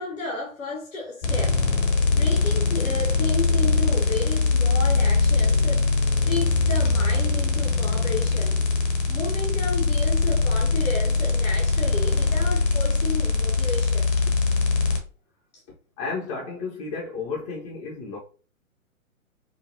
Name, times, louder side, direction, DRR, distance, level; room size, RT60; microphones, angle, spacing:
voice 1, 0.0-1.6 2.1-5.9 6.2-8.6 9.1-14.1 14.9-15.0, left 3 dB, 70° left, 1.3 m, -32 dB
sound 1, 1.2-15.0, left 3 dB, 40° left, 1.0 m, -22 dB
voice 2, 16.0-18.2, left 4 dB, 25° left, 0.7 m, -32 dB
5.0 x 2.3 x 2.6 m
figure-of-eight pair, 125°, 42 cm